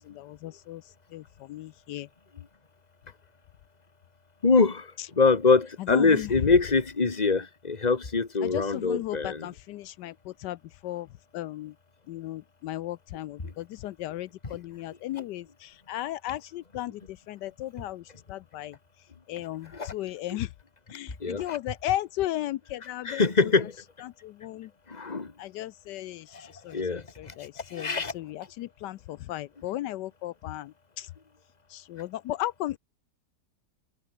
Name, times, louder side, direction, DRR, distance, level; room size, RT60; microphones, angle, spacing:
voice 1, 0.1-0.8 1.1-1.2 1.5-2.1 5.9-6.3 8.4-10.6 10.8-11.1 11.3-11.7 12.1-17.0 17.3-18.0 18.3-18.7 19.3-20.5 20.9-23.2 24.2-24.7 25.4-26.2 26.6-27.9 28.1-30.7 31.0-31.1 31.7-32.8, left 14 dB, 80° left, 1.2 m, -35 dB
voice 2, 4.4-9.5 14.4-14.5 15.2-15.3 19.7-19.9 20.3-20.4 21.2-21.6 23.0-23.8 24.9-25.3 26.4-27.3 27.7-28.1, left 4 dB, 25° left, 1.9 m, -24 dB
omnidirectional pair, 1.8 m